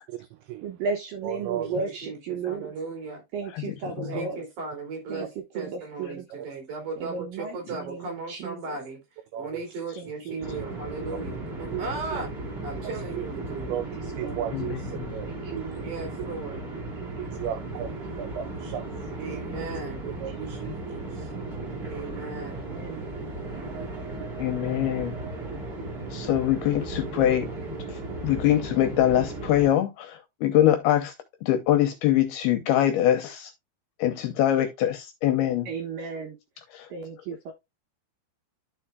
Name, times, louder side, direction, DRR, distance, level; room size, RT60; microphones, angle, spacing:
voice 1, 0.1-0.7 1.2-1.8 4.1-4.3 6.4-6.5 9.3-9.8 11.1-11.2 11.7-12.2 12.8-13.3 13.7-13.9 14.1-15.7 17.2-19.3 20.0-21.3, right 10 dB, 85° right, 2.3 m, -36 dB
voice 2, 0.6-2.7 3.3-4.4 5.1-5.3 5.6-6.2 7.0-8.8 10.0-10.6 14.2-14.4 15.3-15.9 17.0-17.1 19.3-20.0 22.5-23.1 35.7-36.4 36.9-37.5, right 5 dB, 70° right, 2.2 m, -35 dB
voice 3, 1.5-3.2 4.1-5.3 5.5-9.0 9.4-12.3 12.6-13.7 15.8-16.6 19.2-20.0 21.9-22.7, right 3 dB, 50° right, 3.7 m, -37 dB
voice 4, 3.5-4.2 14.5-15.1 24.4-25.3 26.1-27.5 27.9-31.1 31.4-33.5 34.0-35.7 36.7-36.9, left 12 dB, 80° left, 2.4 m, -24 dB
sound 1, 10.4-29.7, right 2 dB, 25° right, 1.4 m, -36 dB
12.5 x 4.5 x 2.2 m
omnidirectional pair, 5.1 m